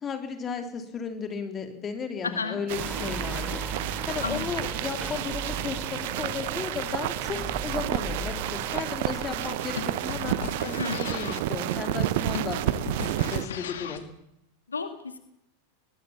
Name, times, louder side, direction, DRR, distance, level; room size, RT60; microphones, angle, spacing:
voice 1, 0.0-3.6 4.1-12.6 13.0-14.1, left 6 dB, 25° left, 7 dB, 3.4 m, -35 dB
voice 2, 2.2-2.6 4.2-4.5 10.8-11.0 14.7-15.2, left 5 dB, 75° left, 9 dB, 1.9 m, -31 dB
sound 1, 2.7-13.5, right 14 dB, 50° right, 1.1 m, -31 dB
sound 2, 2.8-9.4, right 2 dB, 10° right, 5.4 m, -37 dB
sound 3, 8.7-14.1, left 8 dB, 60° left, 1.9 m, -38 dB
22.0 x 20.0 x 7.2 m, 0.80 s
figure-of-eight pair, 90°, 0 cm